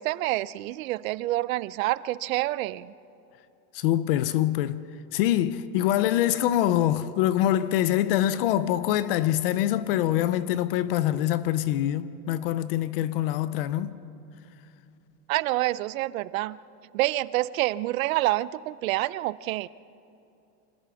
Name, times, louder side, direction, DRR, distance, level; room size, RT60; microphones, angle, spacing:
voice 1, 0.0-2.9 15.3-16.6 16.9-19.7, right 17 dB, 60° right, 0.5 m, -27 dB
voice 2, 3.7-4.8 5.1-14.0, left 12 dB, 40° left, 0.5 m, -24 dB
26.5 x 14.5 x 7.0 m
supercardioid pair, 170°, 48 cm